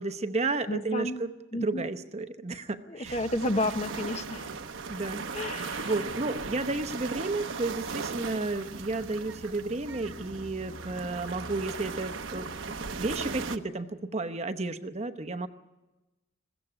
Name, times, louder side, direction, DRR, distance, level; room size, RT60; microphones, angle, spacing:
voice 1, 0.0-1.3 1.6-3.2 4.9-15.5, right 2 dB, 35° right, 10 dB, 0.9 m, -32 dB
voice 2, 0.7-1.2 1.5-1.9 2.9-4.5 5.3-6.0, left 1 dB, 35° left, 8 dB, 1.0 m, -31 dB
sound 1, 3.0-13.6, right 4 dB, 75° right, 1.0 m, -37 dB
21.5 x 16.0 x 9.8 m, 1.1 s
head